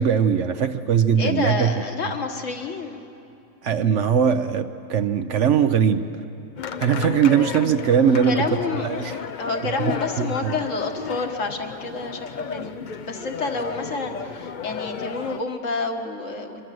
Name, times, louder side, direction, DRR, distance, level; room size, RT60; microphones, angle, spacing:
voice 1, 0.0-1.7 3.6-6.1 6.8-8.5 8.8-9.2 10.2-10.6, right 8 dB, 65° right, 8 dB, 1.0 m, -20 dB
voice 2, 1.2-3.0 8.3-16.6, left 3 dB, 65° left, 4 dB, 2.0 m, -29 dB
sound 1, 6.6-15.4, left 6 dB, 45° left, 0.6 m, -33 dB
25.0 x 23.0 x 7.7 m, 2.6 s
omnidirectional pair, 1.4 m